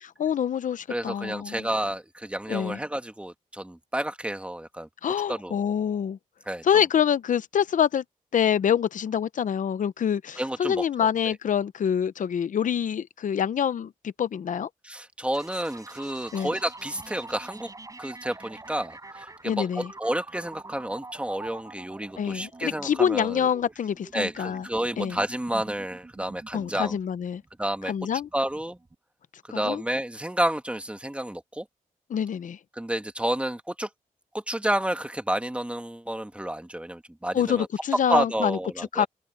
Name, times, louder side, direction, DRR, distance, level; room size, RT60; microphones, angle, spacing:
voice 1, 0.0-1.7 2.5-2.8 5.0-6.2 6.6-8.0 8.3-14.7 16.3-16.5 19.4-19.9 22.2-24.6 25.0-25.2 26.5-27.4 27.9-28.3 29.5-29.8 32.1-32.6 37.3-38.6 38.9-39.1, left 8 dB, 65° left, 0.7 m, -26 dB
voice 2, 0.9-4.9 5.3-5.6 6.4-6.6 10.4-11.4 14.8-17.7 18.0-23.5 24.1-27.0 27.6-27.9 28.3-28.8 29.4-31.6 32.7-33.9 34.3-37.7 38.1-39.1, right 1 dB, 10° right, 1.5 m, -30 dB
sound 1, 15.3-28.9, right 2 dB, 25° right, 7.4 m, -45 dB
open air
cardioid pair, 100°, 14 cm